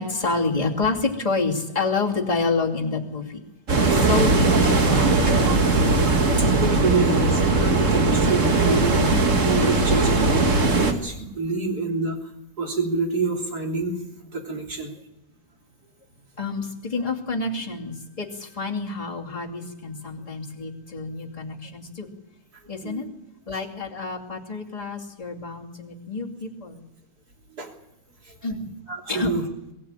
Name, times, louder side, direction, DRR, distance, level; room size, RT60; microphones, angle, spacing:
voice 1, 0.0-3.4 3.9-5.6 9.1-9.3 16.4-22.1 22.7-23.0 23.5-26.8 28.4-28.6 29.1-29.4, left 3 dB, 20° left, -2 dB, 2.7 m, -28 dB
sound 1, 3.7-10.9, right 3 dB, 45° right, 2.1 m, -19 dB
voice 2, 6.4-9.0 9.4-12.2 12.6-14.0 14.3-14.9 22.8-23.0 27.5-27.7 28.3-28.4 28.9-29.4, right 3 dB, 65° right, 2 dB, 3.7 m, -27 dB
23.0 x 15.0 x 9.0 m, 0.88 s
omnidirectional pair, 1.8 m